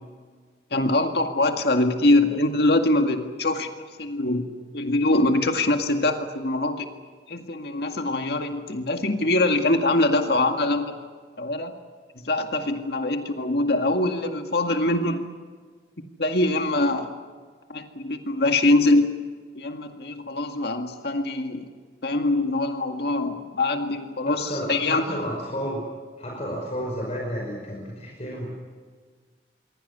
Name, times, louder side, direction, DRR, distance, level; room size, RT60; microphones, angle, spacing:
voice 1, 0.7-6.9 7.3-11.0 11.4-11.7 12.2-15.3 16.2-17.1 17.7-19.1 19.6-21.7 22.0-25.0, left 2 dB, 65° left, 4 dB, 2.1 m, -23 dB
voice 2, 24.2-25.8 26.2-28.5, equal, 35° left, -1 dB, 5.4 m, -31 dB
26.5 x 23.5 x 6.9 m, 1.6 s
head